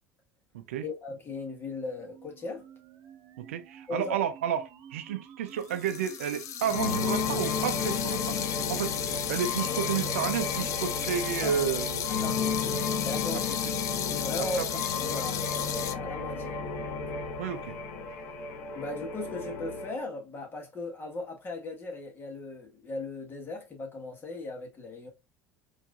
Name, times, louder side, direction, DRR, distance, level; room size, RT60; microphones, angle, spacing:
voice 1, 0.8-2.6 3.9-4.1 11.4-11.6 12.1-12.7 13.0-13.6 14.0-16.6 18.7-25.1, left 3 dB, 30° left, 1.4 m, -38 dB
sound 1, 1.3-11.3, right 6 dB, 55° right, 0.9 m, -51 dB
voice 2, 3.4-8.4 8.7-9.0 9.3-12.1 13.5-13.6 14.4-14.8 17.4-17.8, right 9 dB, 90° right, 0.5 m, -31 dB
sound 2, 5.6-15.9, left 10 dB, 50° left, 0.4 m, -34 dB
sound 3, 6.7-19.9, left 4 dB, 70° left, 1.2 m, -33 dB
4.6 x 2.6 x 2.4 m
hypercardioid pair, 85°, 7 cm